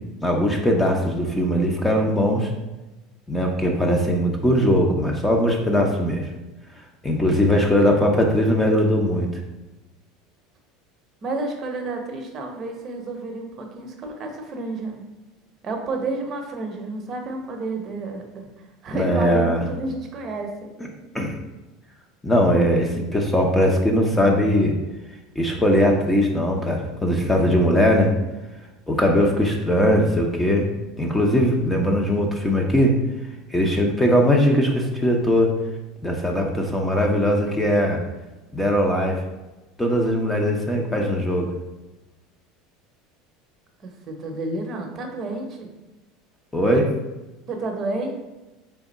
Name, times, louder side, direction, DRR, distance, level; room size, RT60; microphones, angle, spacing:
voice 1, 0.2-2.5 3.3-6.3 7.0-9.4 18.9-19.6 21.1-21.3 22.2-24.8 25.4-28.1 28.9-30.7 31.0-33.0 33.5-35.6 36.0-38.0 38.5-39.2 39.8-41.5 46.5-46.9, equal, 10° left, 1 dB, 0.7 m, -20 dB
voice 2, 11.2-15.0 15.6-18.5 18.8-20.7 43.8-45.7 47.5-48.1, right 2 dB, 40° right, 3 dB, 0.8 m, -30 dB
3.5 x 3.4 x 4.1 m, 1.1 s
supercardioid pair, 110°, 0 cm